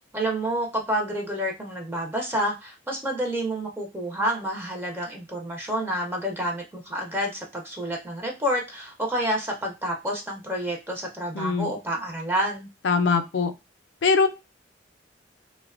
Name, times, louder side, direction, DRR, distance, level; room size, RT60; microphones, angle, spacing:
voice 1, 0.1-12.7, equal, 10° right, 0 dB, 0.4 m, -29 dB
voice 2, 11.3-11.7 12.8-13.5 14.0-14.3, left 4 dB, 80° left, 8 dB, 0.4 m, -22 dB
2.5 x 2.1 x 2.3 m, 0.25 s
head